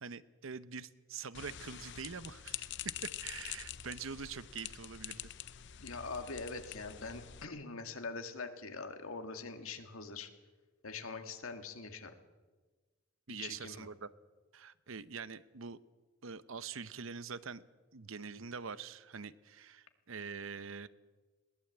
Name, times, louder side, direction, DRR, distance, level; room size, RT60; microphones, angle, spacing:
voice 1, 0.0-5.3 13.3-14.1 14.5-15.8 16.2-17.6 17.9-20.9, right 5 dB, 70° right, 15 dB, 0.8 m, -45 dB
sound 1, 1.3-7.4, left 11 dB, 60° left, 0.7 m, -45 dB
voice 2, 5.8-10.3 10.8-12.1 13.3-13.9, left 4 dB, 85° left, 6 dB, 2.1 m, -43 dB
21.5 x 19.0 x 8.0 m, 1.3 s
head